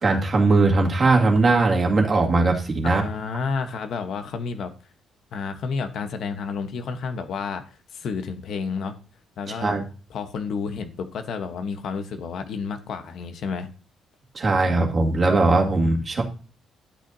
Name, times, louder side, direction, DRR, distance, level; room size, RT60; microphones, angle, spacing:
voice 1, 0.0-3.0 9.6-9.8 14.3-16.2, right 3 dB, 35° right, 1 dB, 2.0 m, -19 dB
voice 2, 2.8-4.7 5.3-9.0 9.4-9.8 10.1-13.7, left 5 dB, 60° left, 8 dB, 1.0 m, -30 dB
11.5 x 8.4 x 2.7 m, 0.37 s
cardioid pair, 125°, 0 cm